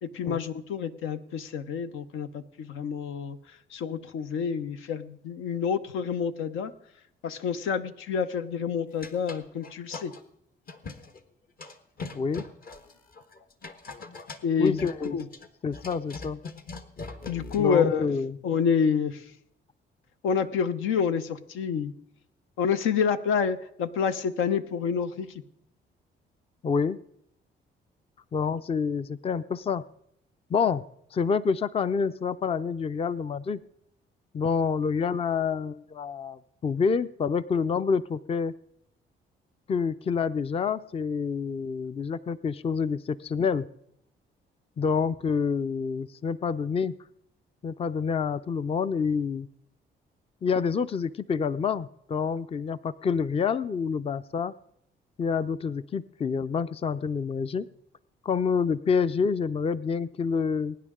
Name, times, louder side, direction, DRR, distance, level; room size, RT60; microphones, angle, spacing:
voice 1, 0.0-3.4 3.7-6.7 7.2-10.1 14.4-14.8 15.1-15.3 17.3-18.1 18.4-19.2 20.2-21.9 22.6-25.3, left 6 dB, 85° left, 10 dB, 0.9 m, -28 dB
sound 1, 8.9-10.2 10.7-11.2 11.6-17.7, left 4 dB, 50° left, 1.3 m, -41 dB
voice 2, 14.6-15.2 15.6-16.4 17.6-18.4 26.6-27.0 28.3-29.8 30.5-30.8 31.1-33.6 34.3-38.5 39.7-43.7 44.8-47.0 47.6-49.5 50.4-54.5 55.2-57.7 58.2-60.8, left 5 dB, 30° left, 16 dB, 0.4 m, -27 dB
22.5 x 9.9 x 3.7 m, 0.74 s
cardioid pair, 90°, 20 cm